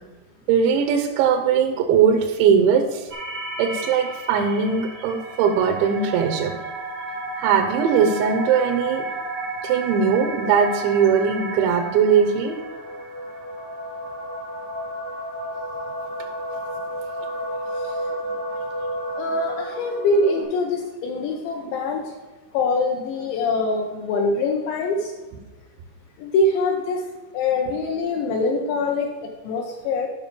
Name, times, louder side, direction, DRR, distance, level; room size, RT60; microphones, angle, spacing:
voice 1, 0.5-3.1 3.6-6.5 7.4-9.1 9.6-12.6, right 7 dB, 80° right, 5 dB, 2.7 m, -20 dB
sound 1, 3.1-20.4, right 1 dB, 55° right, 1.3 m, -32 dB
voice 2, 19.2-22.1 22.5-25.1 26.2-27.1 27.3-30.1, left 3 dB, 75° left, 1 dB, 2.8 m, -24 dB
9.8 x 5.9 x 5.2 m, 1.2 s
omnidirectional pair, 5.9 m